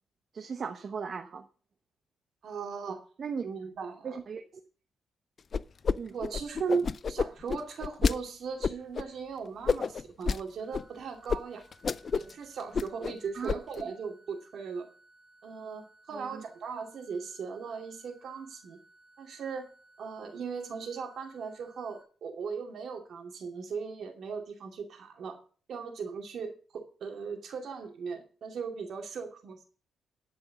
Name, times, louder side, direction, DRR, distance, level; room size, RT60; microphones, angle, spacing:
voice 1, 0.3-1.4 3.2-3.4 4.0-4.4 5.9-6.2 13.3-13.5 16.1-16.4, right 6 dB, 50° right, 6 dB, 0.9 m, -37 dB
voice 2, 2.4-3.0 3.4-4.2 6.1-11.6 12.1-14.9 15.4-18.8 19.2-19.7 20.0-25.4 25.7-29.6, right 5 dB, 70° right, 3 dB, 2.6 m, -38 dB
sound 1, 5.5-6.0 6.2-8.1 8.6-9.0 9.7-10.4 10.7-10.8 11.3-11.4 11.7-12.3 12.6-13.1 13.5-13.8, left 5 dB, 45° left, 0.4 m, -29 dB
sound 2, 10.6-22.0, right 2 dB, 15° right, 2.5 m, -61 dB
11.5 x 5.4 x 7.0 m, 0.40 s
cardioid pair, 100°, 0 cm